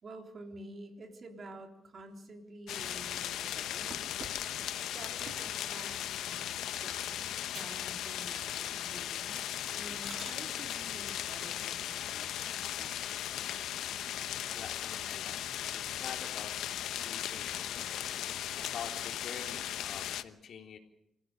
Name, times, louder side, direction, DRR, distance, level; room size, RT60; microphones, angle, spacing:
voice 1, 0.0-4.0 4.7-13.0, right 2 dB, 40° right, 4 dB, 3.6 m, -50 dB
sound 1, 2.7-20.2, left 11 dB, 90° left, 1.0 m, -37 dB
sound 2, 3.9-5.7 6.3-6.6 7.0-7.1 7.5-7.9 8.2-8.7 9.1-9.2 9.7-10.4 12.4-13.1 13.6-13.7 14.1-14.2 14.4-15.2 15.6-16.2 16.6-17.2 17.8-19.5, right 5 dB, 55° right, 2.8 m, -53 dB
voice 2, 13.7-20.8, left 7 dB, 60° left, 4 dB, 3.7 m, -47 dB
26.0 x 16.5 x 6.8 m, 0.81 s
cardioid pair, 130°, 0 cm